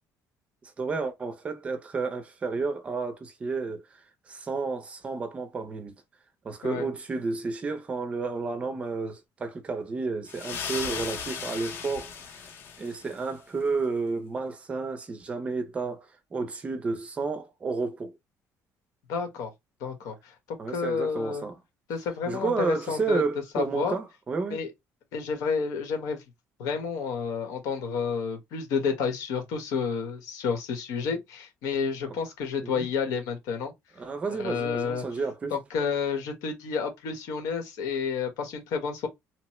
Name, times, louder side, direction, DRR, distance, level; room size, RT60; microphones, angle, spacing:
voice 1, 0.8-3.8 4.3-5.9 6.4-12.1 12.8-18.2 20.6-21.6 22.3-24.6 32.1-32.2 32.6-32.9 34.0-35.6, right 4 dB, 20° right, 0.5 m, -31 dB
sound 1, 10.3-13.3, left 6 dB, 40° left, 0.6 m, -37 dB
voice 2, 19.1-19.5 19.8-20.1 20.7-21.5 21.9-23.2 23.5-24.0 24.5-24.7 25.1-26.2 26.6-33.7 34.4-35.0 35.5-39.1, left 5 dB, 80° left, 1.1 m, -30 dB
3.0 x 2.0 x 3.0 m
cardioid pair, 180°, 6 cm